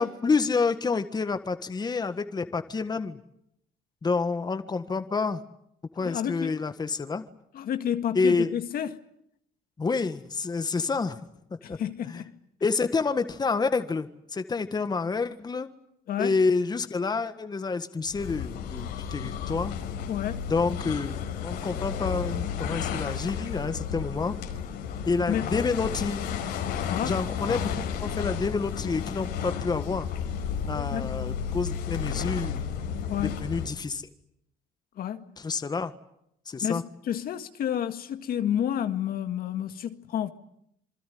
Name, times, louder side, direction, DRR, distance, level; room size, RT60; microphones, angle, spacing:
voice 1, 0.0-3.2 4.0-5.4 5.9-7.2 8.1-8.5 9.8-11.2 11.7-11.8 12.0-12.2 12.6-15.7 16.2-19.7 20.5-24.4 25.0-26.2 27.0-30.1 30.7-32.6 33.2-34.1 35.4-35.9 36.4-36.8, left 4 dB, 25° left, 1.6 m, -28 dB
voice 2, 6.0-6.5 7.5-9.0 11.6-12.2 16.1-16.3 20.1-20.5 25.3-25.5 26.9-27.1 30.7-31.1 33.1-33.4 35.0-35.2 36.6-40.3, left 10 dB, 60° left, 1.9 m, -30 dB
sound 1, 18.1-33.9, left 8 dB, 90° left, 5.0 m, -32 dB
27.5 x 20.5 x 9.4 m
cardioid pair, 110°, 17 cm